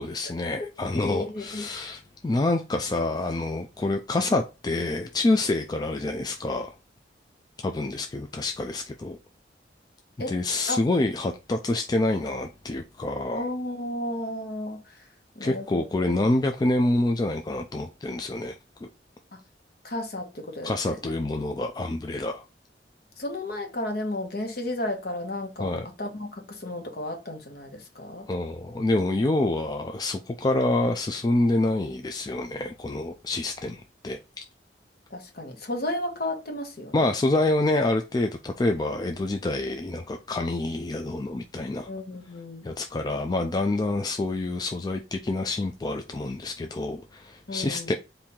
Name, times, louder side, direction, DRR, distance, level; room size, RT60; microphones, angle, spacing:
voice 1, 0.0-6.7 7.6-9.2 10.3-13.5 15.4-18.6 18.8-18.9 20.6-22.4 25.6-25.9 28.3-34.2 36.9-41.9 42.6-47.9, left 2 dB, 20° left, 0.3 m, -27 dB
voice 2, 0.9-1.7 10.2-10.3 10.7-10.8 13.3-15.1 15.3-16.1 19.3-19.4 19.8-21.2 23.2-28.3 35.1-37.1 41.9-42.7 47.5-47.9, left 1 dB, 60° left, 1.2 m, -33 dB
4.3 x 2.7 x 3.6 m
head